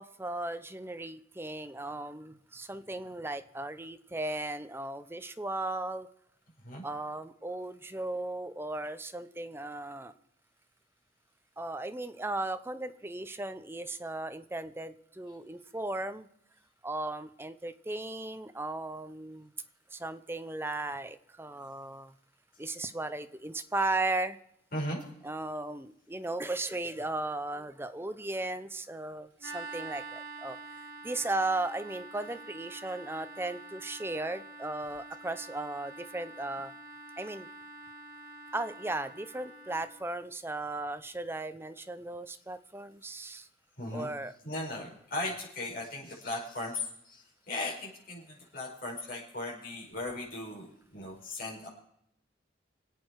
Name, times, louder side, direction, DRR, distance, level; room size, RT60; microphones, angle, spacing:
voice 1, 0.0-6.1 6.8-10.1 11.6-16.3 16.8-19.5 19.9-22.1 22.6-24.4 25.2-30.6 31.0-36.7 37.2-37.5 38.5-43.5 43.9-44.3, right 2 dB, 15° right, 10 dB, 0.7 m, -36 dB
voice 2, 24.7-25.0 43.8-44.1 44.4-51.7, left 2 dB, 50° left, -3 dB, 5.7 m, -37 dB
sound 1, 29.4-40.0, right 3 dB, 65° right, 2.6 m, -47 dB
26.0 x 8.7 x 4.8 m, 0.72 s
head